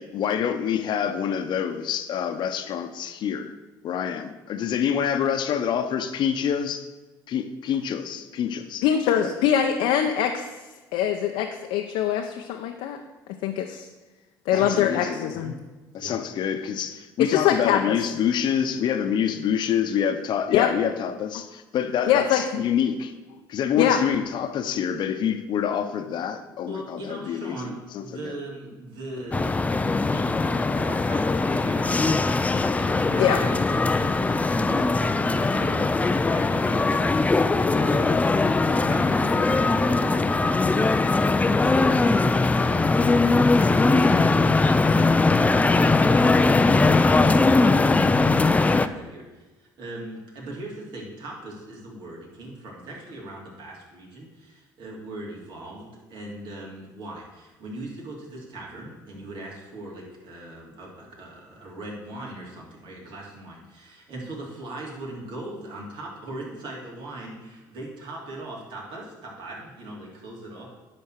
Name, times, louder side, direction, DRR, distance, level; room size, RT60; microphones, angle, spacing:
voice 1, 0.0-3.5 3.8-6.9 7.3-8.8 9.2-9.3 14.5-15.4 15.9-23.1 23.5-28.3, left 8 dB, 60° left, 9 dB, 0.9 m, -26 dB
voice 2, 8.8-10.5 10.9-13.0 13.4-13.9 14.5-15.5 17.2-17.9 20.5-20.7 22.1-22.6 23.8-24.0 33.2-33.4, left 9 dB, 80° left, 3 dB, 0.7 m, -23 dB
voice 3, 14.5-15.6 16.0-16.2 26.4-70.7, right 1 dB, 65° right, -3 dB, 3.1 m, -39 dB
sound 1, 29.3-48.9, left 3 dB, 15° left, 0.5 m, -20 dB
10.5 x 4.3 x 6.5 m, 1.2 s
supercardioid pair, 80°, 9 cm